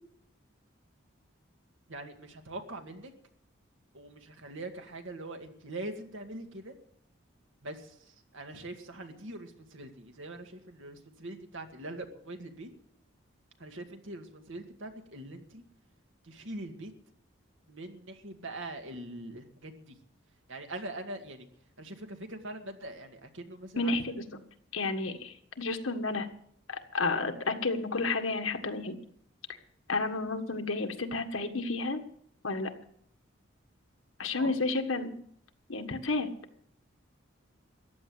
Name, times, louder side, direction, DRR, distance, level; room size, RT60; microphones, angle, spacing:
voice 1, 1.9-3.1 3.9-6.7 7.6-12.7 13.6-15.6 16.2-16.9 17.7-20.0 20.5-21.5 21.8-24.0 34.4-34.6, right 2 dB, 75° right, 5 dB, 2.1 m, -43 dB
voice 2, 23.8-24.2 24.7-26.3 26.7-29.0 29.9-32.0 32.4-32.7 34.2-35.1 35.7-36.3, left 3 dB, 90° left, 6 dB, 1.7 m, -31 dB
14.5 x 10.5 x 7.9 m, 0.67 s
head